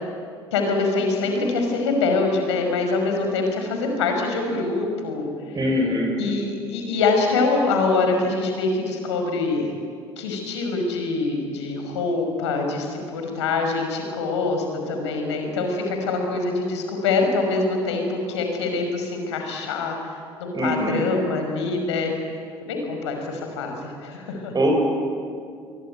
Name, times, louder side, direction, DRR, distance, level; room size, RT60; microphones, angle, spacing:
voice 1, 0.5-5.3 6.2-9.7 10.2-20.1 20.4-22.1 22.7-24.5, left 3 dB, 75° left, 3 dB, 5.7 m, -24 dB
voice 2, 5.5-6.1 20.5-21.0 24.5-24.8, equal, 25° right, 0 dB, 6.7 m, -22 dB
26.0 x 24.0 x 9.3 m, 2.2 s
figure-of-eight pair, 60°, 15 cm